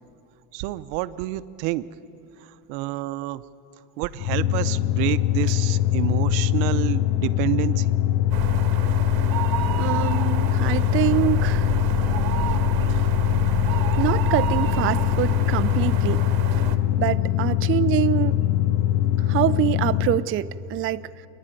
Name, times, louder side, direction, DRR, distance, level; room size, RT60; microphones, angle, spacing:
voice 1, 0.5-1.8 2.7-3.4 4.0-7.8, right 17 dB, 80° right, 15 dB, 0.7 m, -28 dB
sound 1, 4.2-20.3, left 13 dB, 65° left, 0.8 m, -22 dB
sound 2, 8.3-16.8, right 11 dB, 55° right, 1.4 m, -29 dB
voice 2, 9.8-11.7 14.0-16.2 17.0-18.4 19.2-21.1, right 13 dB, 30° right, 14 dB, 0.4 m, -25 dB
28.0 x 10.5 x 9.0 m, 2.8 s
supercardioid pair, 105°, 43 cm